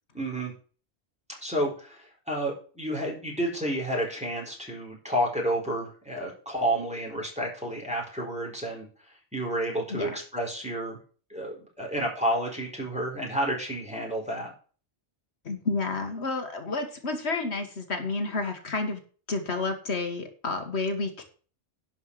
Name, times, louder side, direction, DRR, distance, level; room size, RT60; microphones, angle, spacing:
voice 1, 0.1-0.5 1.4-8.9 9.3-11.0 11.3-14.5, right 1 dB, 5° right, -2 dB, 4.4 m, -30 dB
voice 2, 15.4-19.0 19.3-21.2, left 3 dB, 70° left, 6 dB, 1.8 m, -30 dB
11.0 x 5.4 x 7.3 m, 0.40 s
omnidirectional pair, 1.1 m